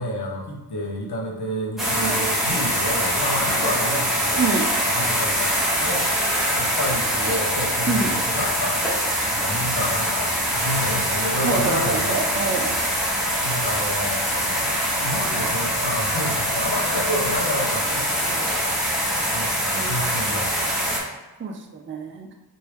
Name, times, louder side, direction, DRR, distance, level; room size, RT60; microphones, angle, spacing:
voice 1, 0.0-4.5 4.9-5.5 5.8-6.1 6.5-8.9 9.3-12.2 13.4-14.7 15.0-18.3 19.3-20.8, equal, 60° left, -2 dB, 0.9 m, -29 dB
sound 1, 1.8-21.0, equal, ahead, 1.1 m, -23 dB
voice 2, 4.4-4.7 7.9-8.2 11.4-12.7 19.7-20.3 21.4-22.3, right 4 dB, 30° right, 3 dB, 0.4 m, -26 dB
3.2 x 2.7 x 3.0 m, 1.1 s
wide cardioid pair, 65°, 45 cm